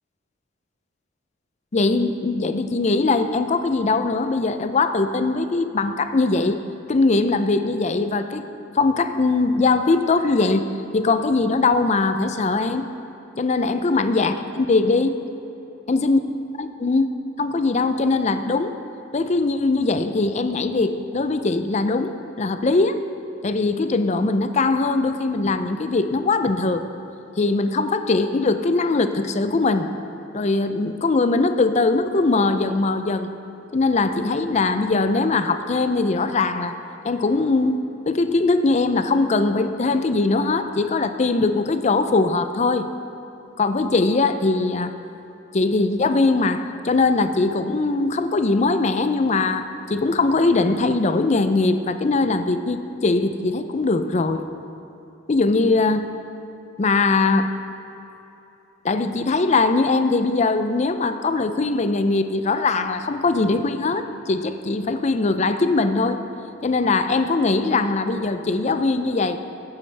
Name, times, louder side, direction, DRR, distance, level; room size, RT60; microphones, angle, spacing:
voice 1, 1.7-6.6 6.9-8.5 8.7-10.7 10.9-12.9 13.4-15.2 15.9-16.2 16.6-17.1 17.4-18.7 19.1-23.0 23.4-26.8 27.4-29.9 30.3-33.3 33.7-36.7 37.0-42.9 43.6-44.9 45.5-54.5 55.3-56.1 56.8-57.5 58.8-66.2 66.6-69.4, left 3 dB, 35° left, 9 dB, 0.5 m, -21 dB
15.0 x 9.5 x 3.4 m, 3.0 s
head